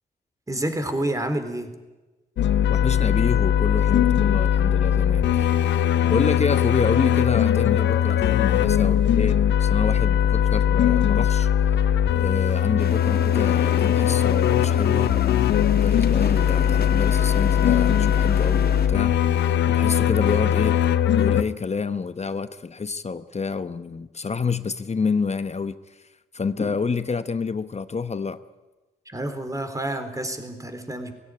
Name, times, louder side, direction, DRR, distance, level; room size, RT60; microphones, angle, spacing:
voice 1, 0.5-1.7 29.1-31.1, right 1 dB, 20° right, 8 dB, 3.8 m, -29 dB
sound 1, 2.4-21.4, left 10 dB, 75° left, 0.7 m, -20 dB
voice 2, 2.7-5.5 6.0-11.5 12.1-15.1 15.7-19.1 19.7-20.8 21.2-26.1 26.3-28.4, left 5 dB, 35° left, 12 dB, 0.9 m, -28 dB
sound 2, 12.8-18.9, left 6 dB, 55° left, 1.8 m, -32 dB
16.5 x 16.5 x 9.8 m, 1.2 s
supercardioid pair, 45°, 18 cm